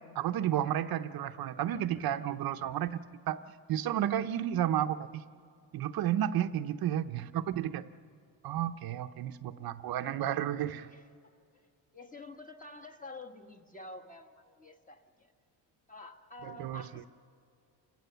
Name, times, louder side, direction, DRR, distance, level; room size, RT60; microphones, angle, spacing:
voice 1, 0.1-3.0 3.3-3.4 3.7-5.2 5.7-7.8 8.4-10.9 16.4-16.9, right 11 dB, 55° right, 9 dB, 0.7 m, -32 dB
voice 2, 10.9-11.4 11.9-15.3 15.9-17.1, left 2 dB, 20° left, 4 dB, 1.3 m, -49 dB
28.5 x 16.0 x 6.8 m, 2.3 s
cardioid pair, 145°, 44 cm